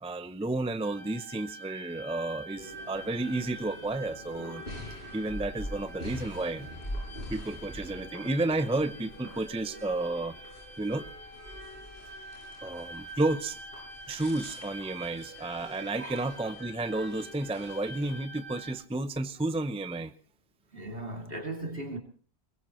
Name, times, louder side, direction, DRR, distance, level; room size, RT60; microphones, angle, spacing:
voice 1, 0.0-4.6 5.1-6.7 7.3-10.3 10.8-11.0 12.6-13.6 14.1-20.1, right 2 dB, 5° right, 0.6 m, -32 dB
sound 1, 0.8-18.7, right 1 dB, 85° left, 5.1 m, -47 dB
sound 2, 2.6-18.1, equal, 55° left, 8.0 m, -44 dB
voice 2, 20.7-22.0, right 2 dB, 65° right, 2.9 m, -37 dB
22.0 x 21.0 x 3.1 m
omnidirectional pair, 1.1 m